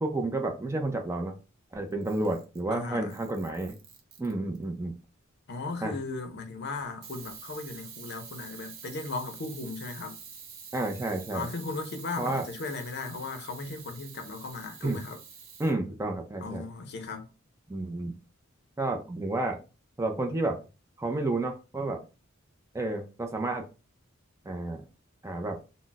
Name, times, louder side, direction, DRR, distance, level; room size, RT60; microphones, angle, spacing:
voice 1, 0.0-1.3 1.7-3.8 4.2-5.0 5.8-5.9 10.7-11.5 12.2-12.4 14.8-15.0 15.6-16.6 17.7-18.1 18.8-19.6 20.0-20.6 21.0-22.0 22.7-23.7 24.5-24.9 25.2-25.6, right 2 dB, 15° right, 0.4 m, -30 dB
Camera, 1.9-2.7 3.1-4.6 7.0-15.7, right 6 dB, 75° right, 0.7 m, -47 dB
voice 2, 2.7-3.1 5.5-10.2 11.3-15.2 16.4-17.3, left 3 dB, 55° left, 0.5 m, -37 dB
2.3 x 2.0 x 3.8 m
head